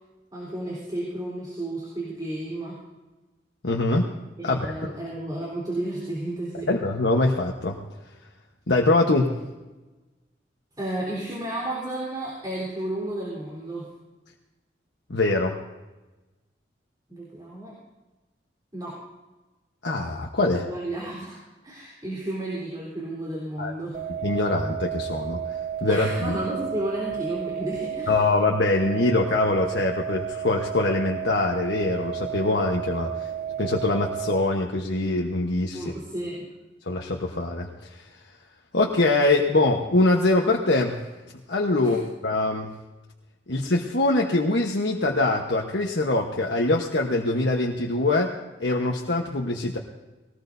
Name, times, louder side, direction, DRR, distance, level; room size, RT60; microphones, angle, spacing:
voice 1, 0.3-2.8 4.4-6.7 10.8-13.9 17.1-17.8 18.7-19.0 20.5-21.4 21.6-24.0 25.9-28.2 35.7-36.5 41.8-42.0, right 1 dB, 25° right, -5 dB, 3.9 m, -32 dB
voice 2, 3.6-4.1 4.4-4.9 6.7-7.8 8.7-9.3 15.1-15.6 19.8-20.7 23.6-23.7 24.2-26.3 28.1-33.3 33.6-35.9 36.9-38.1 38.7-41.1 41.5-42.7 43.5-48.3 48.6-49.8, left 2 dB, 70° left, 0 dB, 1.2 m, -23 dB
sound 1, 23.9-34.4, right 9 dB, 40° right, 0.5 m, -32 dB
20.5 x 19.0 x 2.7 m, 1.1 s
head